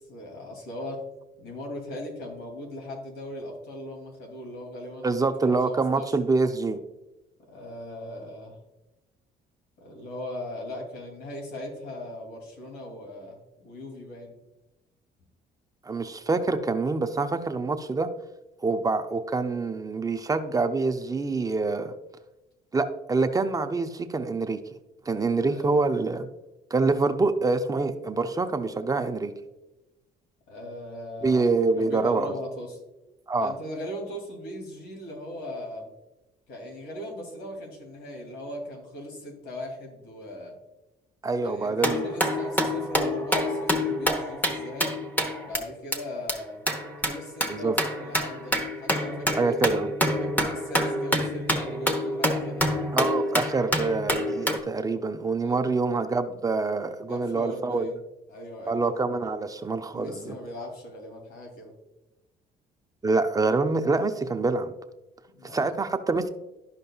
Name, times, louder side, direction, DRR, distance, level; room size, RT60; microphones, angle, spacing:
voice 1, 0.1-1.1 1.4-6.2 7.5-8.6 9.8-14.3 25.4-25.8 30.5-32.8 33.4-35.9 36.5-40.6 41.4-45.0 45.4-46.6 47.0-49.6 50.2-52.7 55.4-55.6 57.1-58.0 58.3-58.9 59.8-61.7 65.3-65.8, left 1 dB, 80° left, 1 dB, 2.7 m, -39 dB
voice 2, 5.0-6.8 15.9-18.1 18.6-21.9 22.7-24.6 25.1-26.3 26.7-29.3 31.2-32.3 33.3-33.5 41.2-42.1 47.5-47.8 49.4-49.9 52.9-57.9 58.7-60.3 63.0-64.7 65.4-66.3, right 3 dB, 20° right, 7 dB, 0.5 m, -26 dB
sound 1, 41.8-45.6 45.9-46.0 46.3-46.4 46.7-54.6, equal, 10° left, 1.0 m, -27 dB
12.0 x 5.3 x 2.3 m, 0.98 s
cardioid pair, 110°, 17 cm